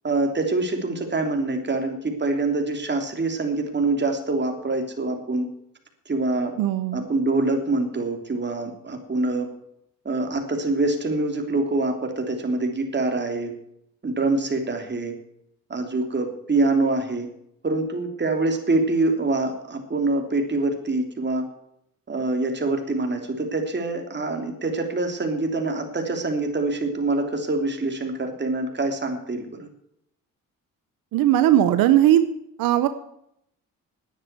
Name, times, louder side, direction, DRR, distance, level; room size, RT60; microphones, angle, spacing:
voice 1, 0.0-5.5 6.1-6.5 6.9-9.5 10.0-13.5 14.0-15.1 15.7-17.3 17.6-21.4 22.1-29.7, right 2 dB, 30° right, 4 dB, 3.2 m, -25 dB
voice 2, 6.6-7.1 31.1-32.2 32.6-32.9, right 12 dB, 90° right, 11 dB, 0.8 m, -18 dB
11.0 x 9.6 x 8.2 m, 0.76 s
cardioid pair, 70°, 34 cm